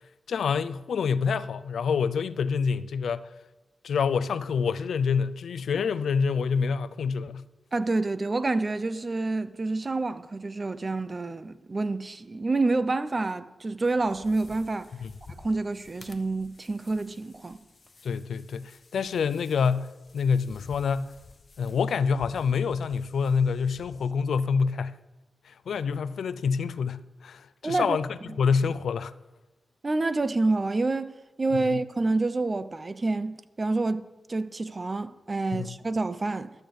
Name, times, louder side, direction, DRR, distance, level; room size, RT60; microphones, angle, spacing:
voice 1, 0.3-3.3 3.8-7.4 15.0-15.1 18.0-21.1 21.6-24.9 25.4-29.1 31.7-31.8 35.5-35.8, left 6 dB, 85° left, 0.5 m, -27 dB
voice 2, 7.7-14.9 15.4-17.6 27.6-28.0 29.8-36.5, right 3 dB, 35° right, 0.7 m, -28 dB
sound 1, 13.9-24.1, left 3 dB, 50° left, 1.0 m, -52 dB
12.5 x 6.6 x 7.9 m
cardioid pair, 65°, 0 cm